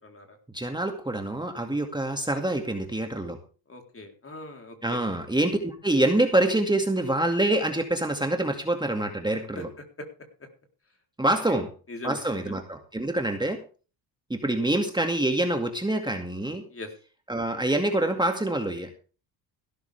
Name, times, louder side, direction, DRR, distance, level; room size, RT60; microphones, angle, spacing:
voice 1, 0.0-0.4 3.7-5.0 9.6-9.7 11.2-11.6 11.9-12.6 16.7-16.9, left 2 dB, 25° left, 4 dB, 3.8 m, -41 dB
voice 2, 0.5-3.4 4.8-9.7 11.2-11.7 12.0-13.6 14.3-16.6 17.3-18.9, right 1 dB, 10° right, 4 dB, 2.2 m, -26 dB
16.0 x 13.0 x 3.5 m, 0.37 s
supercardioid pair, 85°, 48 cm